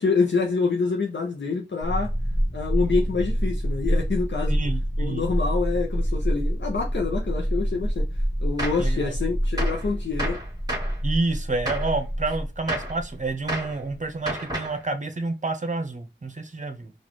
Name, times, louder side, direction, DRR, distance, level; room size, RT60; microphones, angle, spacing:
voice 1, 0.0-2.1 2.5-4.6 5.0-8.0 8.4-10.4, left 4 dB, 65° left, 0.7 m, -26 dB
sound 1, 1.8-14.0, equal, 20° left, 1.0 m, -27 dB
voice 2, 4.5-5.3 8.8-9.1 11.0-16.9, right 3 dB, 40° right, 0.8 m, -29 dB
Gunshot gunfire, 8.6-8.9 9.6-9.9 10.2-11.0 11.7-12.0 12.7-13.0 13.5-13.8 14.3-14.8, right 1 dB, 20° right, 1.5 m, -31 dB
3.9 x 2.5 x 3.0 m
wide cardioid pair, 50°, 20 cm